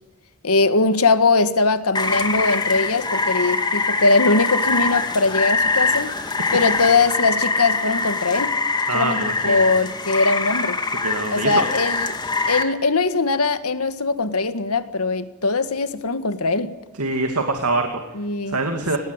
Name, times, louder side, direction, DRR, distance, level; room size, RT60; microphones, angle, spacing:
voice 1, 0.4-6.2 6.5-8.5 8.9-10.8 11.3-12.2 12.5-16.7 18.1-18.6, left 3 dB, 80° left, 11 dB, 1.8 m, -21 dB
Rain, 1.9-12.6, left 3 dB, 20° left, 2.2 m, -23 dB
voice 2, 8.9-9.6 11.0-11.6 17.0-18.0 18.5-19.0, right 3 dB, 80° right, 5 dB, 2.6 m, -24 dB
27.5 x 19.0 x 8.2 m, 1.1 s
head